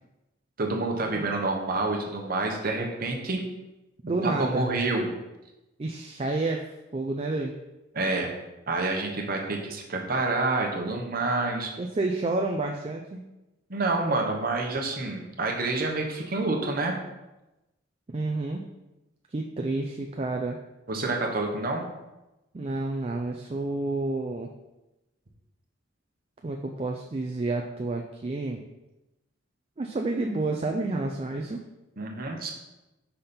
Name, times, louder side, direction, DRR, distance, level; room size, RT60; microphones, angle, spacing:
voice 1, 0.6-3.4 4.2-5.1 7.9-8.3 8.7-11.7 13.7-16.9 20.9-21.8 32.0-32.5, right 2 dB, 45° right, 1 dB, 1.0 m, -28 dB
voice 2, 4.0-4.6 5.8-6.6 6.9-7.5 11.8-13.2 18.1-18.6 19.3-20.6 22.5-24.5 26.4-28.6 29.8-31.6, right 2 dB, 30° right, 2 dB, 0.4 m, -29 dB
5.6 x 4.3 x 5.2 m, 0.99 s
head